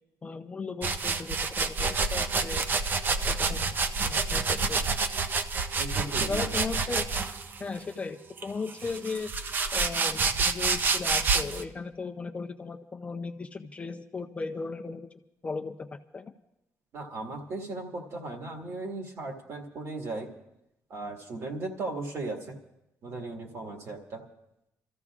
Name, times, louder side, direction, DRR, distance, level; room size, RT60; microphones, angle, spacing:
voice 1, 0.2-2.7 3.1-3.7 4.0-4.9 6.2-7.1 7.6-9.3 9.7-15.1 15.4-15.9 16.1-16.3, left 4 dB, 20° left, 5 dB, 0.4 m, -36 dB
sound 1, 0.8-7.6 8.4-11.6, right 4 dB, 35° right, 0.5 m, -28 dB
voice 2, 5.8-6.5 16.9-20.3 20.9-22.6 23.0-24.2, right 2 dB, 55° right, 1 dB, 1.8 m, -37 dB
30.0 x 14.0 x 2.4 m, 0.87 s
cardioid pair, 175°, 6 cm